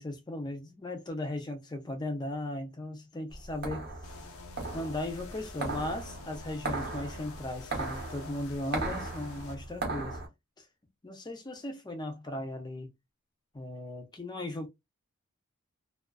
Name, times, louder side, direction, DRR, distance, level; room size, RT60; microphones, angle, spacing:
voice 1, 0.0-3.9 4.7-10.2 10.6-10.7 11.0-12.9 13.5-14.7, left 1 dB, 20° left, 0.5 m, -37 dB
sound 1, 3.3-10.3, right 3 dB, 50° right, 0.8 m, -37 dB
sound 2, 4.0-9.6, left 4 dB, 80° left, 0.5 m, -49 dB
2.4 x 2.3 x 2.2 m
head